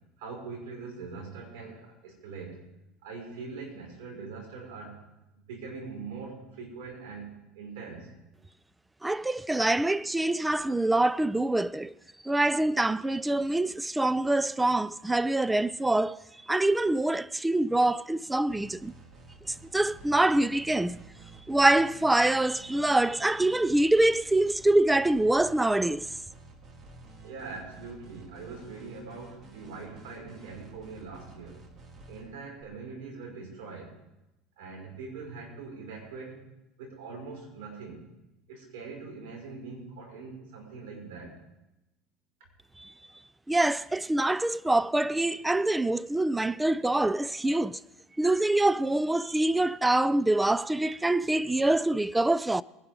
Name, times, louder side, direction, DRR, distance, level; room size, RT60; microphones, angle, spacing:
voice 1, 0.2-2.6 3.0-5.1 5.5-8.1 27.2-31.6 32.1-34.0 34.6-36.4 36.8-38.0 38.5-41.4, right 4 dB, 80° right, 5.5 m, -42 dB
voice 2, 9.0-11.9 12.2-16.2 16.5-18.9 19.5-21.0 21.5-26.1 42.8-42.9 43.5-47.8 48.2-52.6, right 2 dB, 10° right, 0.4 m, -25 dB
sound 1, 18.5-32.6, right 2 dB, 40° right, 2.0 m, -51 dB
21.5 x 11.5 x 3.7 m
supercardioid pair, 105°, 0 cm